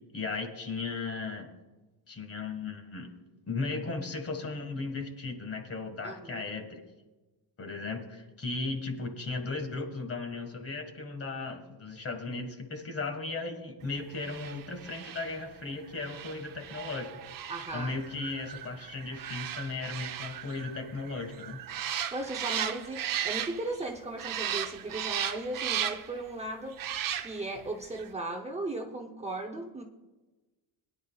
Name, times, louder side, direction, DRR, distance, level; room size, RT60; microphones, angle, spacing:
voice 1, 0.1-1.5 2.1-3.1 3.5-6.8 7.6-17.1 17.7-21.6, left 3 dB, 30° left, 5 dB, 1.8 m, -36 dB
voice 2, 6.0-6.5 17.5-18.0 22.1-26.8 27.2-29.8, right 2 dB, 15° right, 1 dB, 0.8 m, -37 dB
sound 1, 14.1-23.9 24.2-26.2 26.7-27.6 27.9-28.1, right 10 dB, 50° right, 0.8 m, -36 dB
21.5 x 10.5 x 2.4 m, 1.1 s
cardioid pair, 140°, 44 cm